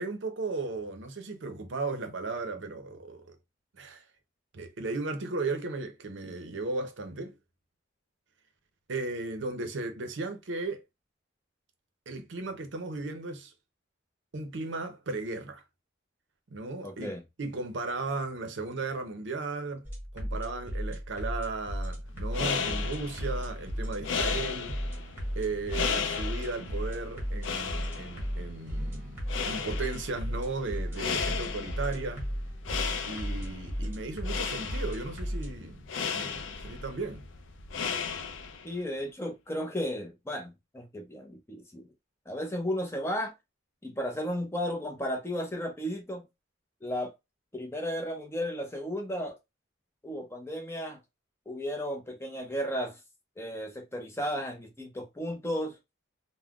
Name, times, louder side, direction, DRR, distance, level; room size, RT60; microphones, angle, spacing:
voice 1, 0.0-3.4 3.8-4.0 4.5-7.4 8.9-10.8 12.1-13.5 14.3-15.6 16.5-19.9 20.1-24.8 25.4-32.3 33.1-37.2, right 3 dB, 65° right, 0.6 m, -36 dB
voice 2, 16.8-17.2 38.6-41.9 42.3-43.3 43.8-46.3 46.8-47.1 47.5-49.4 50.0-51.0 51.5-53.0 53.4-55.7, equal, 15° left, 0.6 m, -34 dB
sound 1, 19.8-35.5, equal, 10° right, 1.1 m, -35 dB
sound 2, 22.1-38.7, left 6 dB, 70° left, 0.4 m, -35 dB
3.6 x 2.1 x 2.3 m
head